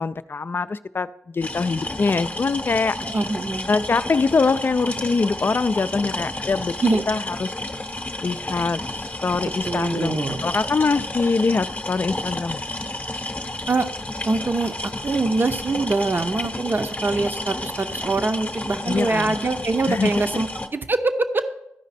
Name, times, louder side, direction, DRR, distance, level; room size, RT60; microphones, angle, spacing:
voice 1, 0.0-2.9 3.7-6.7 7.1-7.5 8.2-12.6 18.9-19.4 19.9-20.4, left 4 dB, 45° left, 14 dB, 0.4 m, -23 dB
sound 1, 1.4-20.7, left 1 dB, 30° left, 0.9 m, -31 dB
voice 2, 3.0-3.7 6.8-7.0 9.6-10.5 13.7-13.9 14.3-21.4, right 3 dB, 40° right, 8 dB, 0.8 m, -24 dB
13.5 x 5.1 x 4.2 m, 0.80 s
cardioid pair, 50°, 5 cm